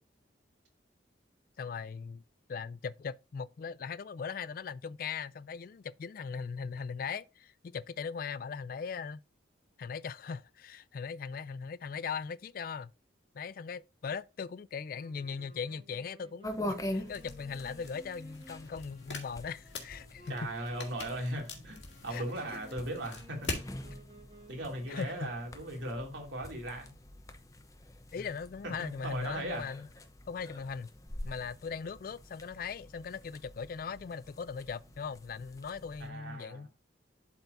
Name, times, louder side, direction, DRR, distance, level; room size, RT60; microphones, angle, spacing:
voice 1, 1.6-2.2 2.5-9.2 9.8-12.9 13.3-20.5 22.1-22.2 22.5-22.6 24.9-25.3 28.1-29.9 30.3-30.9 31.2-36.7, left 6 dB, 45° left, 0.3 m, -39 dB
Wind instrument woodwind instrument, 14.8-26.6, left 1 dB, 25° right, 1.6 m, -57 dB
sound 1, 16.4-36.1, left 1 dB, 15° left, 0.7 m, -45 dB
sound 2, 17.1-23.7, left 3 dB, 75° left, 1.9 m, -44 dB
voice 2, 20.3-23.5 24.5-26.9 28.1-28.2 28.8-29.6 36.0-36.7, right 1 dB, 80° right, 2.6 m, -38 dB
12.0 x 4.4 x 2.6 m
head